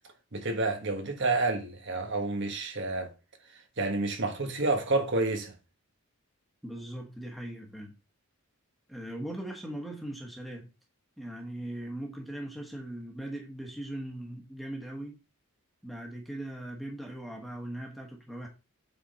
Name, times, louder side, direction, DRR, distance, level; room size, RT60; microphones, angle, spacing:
voice 1, 0.3-3.1 3.8-5.5, right 2 dB, 55° right, 1.4 m, -29 dB
voice 2, 6.6-7.9 8.9-10.7 11.2-15.2 15.8-18.5, right 1 dB, ahead, 1.3 m, -39 dB
8.5 x 4.0 x 4.2 m
head